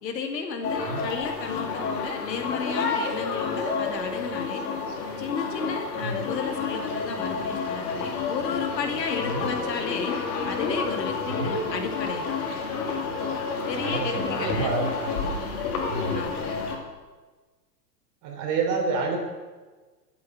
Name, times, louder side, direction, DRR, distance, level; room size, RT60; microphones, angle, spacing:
voice 1, 0.0-4.7 5.2-10.2 10.5-12.4 13.7-14.8 16.1-16.7, left 5 dB, 75° left, 4 dB, 2.3 m, -33 dB
sound 1, 0.6-16.8, left 4 dB, 60° left, 2.6 m, -30 dB
voice 2, 11.3-11.6 13.7-15.4 15.9-16.3 18.2-19.2, right 3 dB, 35° right, 2 dB, 3.4 m, -29 dB
13.0 x 7.7 x 7.4 m, 1.3 s
hypercardioid pair, 115°, 50 cm